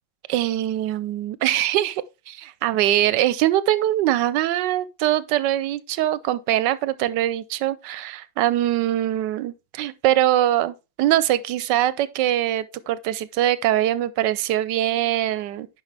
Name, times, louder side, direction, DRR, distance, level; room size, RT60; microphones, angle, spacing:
voice 1, 0.3-15.7, right 13 dB, 75° right, 1.1 m, -22 dB
9.9 x 5.4 x 3.3 m
omnidirectional pair, 2.0 m